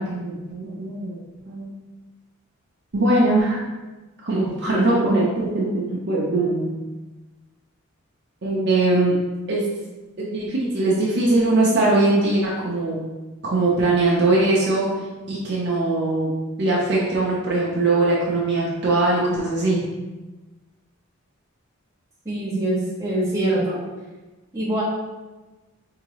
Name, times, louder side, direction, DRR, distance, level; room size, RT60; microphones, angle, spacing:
voice 1, 0.0-1.7 2.9-3.7 4.2-6.7 8.4-9.2 9.5-9.7 10.2-13.1 13.4-14.9 15.3-19.9, right 2 dB, 50° right, -5 dB, 0.6 m, -21 dB
voice 2, 22.2-23.8 24.5-24.8, right 1 dB, 15° right, -9 dB, 1.3 m, -24 dB
4.6 x 2.8 x 3.0 m, 1.2 s
head